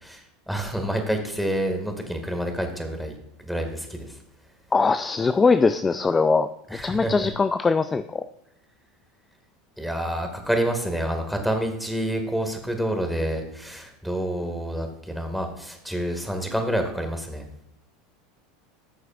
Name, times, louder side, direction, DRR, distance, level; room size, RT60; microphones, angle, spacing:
voice 1, 0.0-3.2 3.4-4.1 6.7-7.3 9.8-17.5, right 1 dB, ahead, 5 dB, 1.9 m, -28 dB
voice 2, 4.7-6.5 6.8-8.2, left 4 dB, 20° left, 11 dB, 0.4 m, -21 dB
14.0 x 6.4 x 2.4 m, 0.80 s
hypercardioid pair, 95°, 0 cm